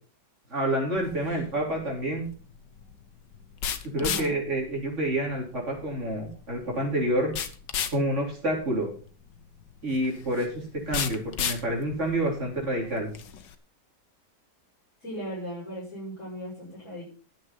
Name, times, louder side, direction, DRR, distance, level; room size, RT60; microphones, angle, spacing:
voice 1, 0.5-2.2 3.9-7.3 7.9-8.9 9.8-13.1, right 1 dB, 40° right, -2 dB, 4.4 m, -28 dB
sound 1, 1.0-13.5, left 8 dB, 90° left, 1.7 m, -36 dB
voice 2, 4.0-4.4 15.0-17.0, equal, 45° left, -7 dB, 7.0 m, -37 dB
11.0 x 7.8 x 5.8 m, 0.40 s
omnidirectional pair, 1.9 m